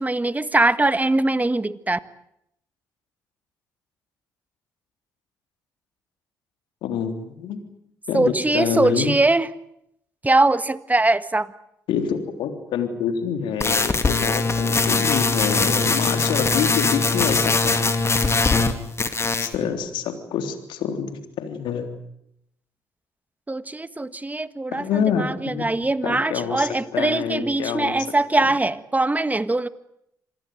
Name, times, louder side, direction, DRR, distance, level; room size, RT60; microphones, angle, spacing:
voice 1, 0.0-2.0 8.1-9.5 10.2-11.5 23.5-29.7, right 2 dB, 20° right, 14 dB, 1.7 m, -22 dB
voice 2, 6.8-7.6 8.1-9.1 11.9-17.9 19.4-22.0 24.7-25.7 26.0-27.9, left 7 dB, 75° left, 7 dB, 3.5 m, -27 dB
sound 1, 13.6-18.7 19.0-19.6, left 3 dB, 35° left, 3.2 m, -21 dB
27.0 x 19.5 x 9.4 m, 0.77 s
hypercardioid pair, 45°, 8 cm